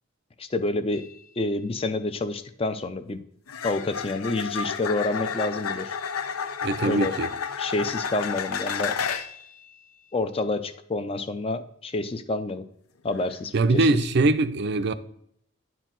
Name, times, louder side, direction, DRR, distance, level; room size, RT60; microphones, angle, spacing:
voice 1, 0.4-1.0 1.4-3.2 3.6-6.0 6.8-7.2 7.6-9.0 10.1-12.7 13.0-13.9, left 2 dB, 25° left, 0.4 m, -28 dB
sound 1, 0.9-1.1 3.5-9.4 13.1-13.4, left 6 dB, 85° left, 0.6 m, -31 dB
voice 2, 6.6-7.3 13.5-14.9, right 2 dB, 50° right, 0.4 m, -22 dB
9.9 x 4.5 x 3.8 m
head